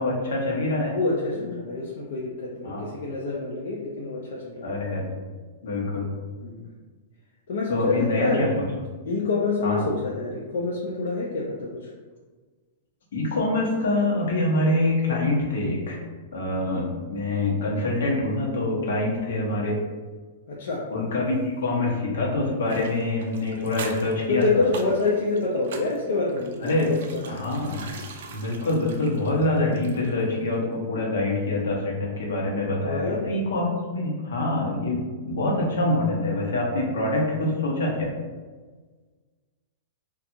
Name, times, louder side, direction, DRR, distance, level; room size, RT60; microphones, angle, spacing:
voice 1, 0.0-0.9 2.6-2.8 4.6-5.1 5.6-6.1 7.7-8.7 9.6-9.9 13.1-16.0 16.3-19.8 20.9-24.4 26.6-26.9 27.3-27.9 28.3-38.1, left 2 dB, 80° left, -3 dB, 0.8 m, -25 dB
voice 2, 0.9-4.8 6.4-6.7 7.5-8.4 9.0-11.9 20.5-20.8 24.3-27.4 32.8-33.2, left 3 dB, 60° left, -3 dB, 0.4 m, -27 dB
sound 1, 22.7-30.3 30.5-30.6, right 4 dB, 55° right, 0.3 m, -42 dB
2.7 x 2.3 x 2.6 m, 1.4 s
supercardioid pair, 175°, 0 cm